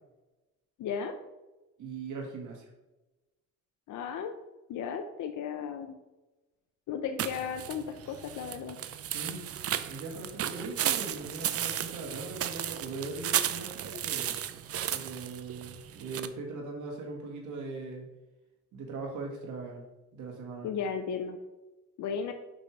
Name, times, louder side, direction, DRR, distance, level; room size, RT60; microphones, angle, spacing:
voice 1, 0.8-1.1 3.9-4.3 4.7-6.0 6.9-8.8 20.6-21.4 22.0-22.3, left 7 dB, 75° left, 5 dB, 0.7 m, -35 dB
voice 2, 1.8-2.7 9.1-9.4 9.8-14.4 14.9-18.1 18.7-19.8 20.1-20.7, right 3 dB, 80° right, 1 dB, 1.9 m, -40 dB
sound 1, 7.2-16.3, right 10 dB, 50° right, 0.5 m, -34 dB
5.5 x 5.4 x 4.6 m, 1.1 s
cardioid pair, 90°, 30 cm